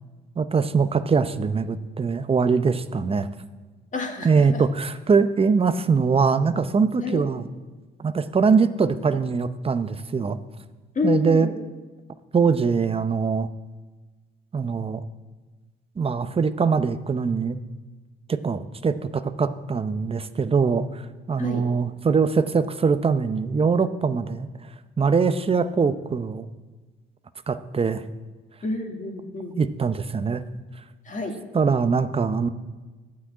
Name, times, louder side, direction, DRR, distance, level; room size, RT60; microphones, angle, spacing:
voice 1, 0.4-3.3 4.2-7.5 8.0-10.4 11.0-11.5 12.3-13.5 14.5-15.0 16.0-17.6 18.3-21.0 21.3-24.5 25.0-26.5 27.5-28.0 29.6-30.4 31.5-32.5, right 5 dB, 30° right, 12 dB, 0.7 m, -22 dB
voice 2, 3.9-4.6 7.0-7.2 11.0-11.5 21.4-21.7 28.6-29.5 31.1-31.4, left 3 dB, 40° left, 3 dB, 1.9 m, -29 dB
11.0 x 6.2 x 8.6 m, 1.3 s
cardioid pair, 90°, 20 cm